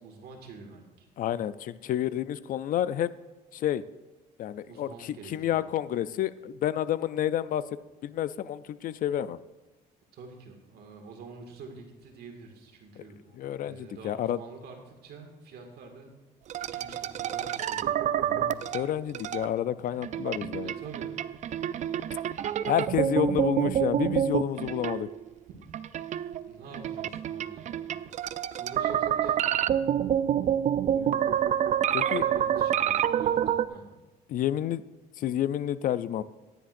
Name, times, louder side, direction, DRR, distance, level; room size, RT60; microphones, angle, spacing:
voice 1, 0.0-1.1 4.6-5.6 10.1-16.1 16.7-18.0 20.6-21.1 22.7-23.0 26.5-29.5 32.1-33.9, right 4 dB, 70° right, 3 dB, 1.9 m, -47 dB
voice 2, 1.2-3.1 3.5-3.8 4.4-9.4 13.4-14.4 18.3-20.7 22.7-25.1 30.9-31.4 31.9-32.2 34.3-34.8 35.2-36.2, left 11 dB, 55° left, 16 dB, 0.4 m, -30 dB
sound 1, 16.5-19.5 20.0-25.3 25.7-33.7, right 10 dB, 45° right, 0.4 m, -28 dB
14.0 x 10.0 x 2.6 m, 1.2 s
cardioid pair, 110°, 17 cm